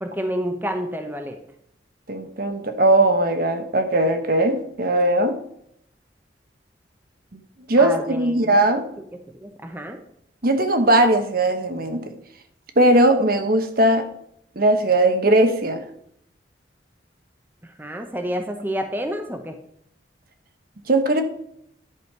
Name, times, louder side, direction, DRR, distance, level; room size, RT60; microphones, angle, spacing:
voice 1, 0.0-1.4 7.8-8.7 9.3-10.0 17.6-19.6, equal, 10° right, 4 dB, 0.8 m, -29 dB
voice 2, 2.1-5.4 7.7-8.8 10.4-12.0 12.8-14.1 14.6-15.8 20.9-21.2, right 1 dB, 50° right, 7 dB, 1.1 m, -19 dB
11.0 x 5.1 x 5.8 m, 0.71 s
head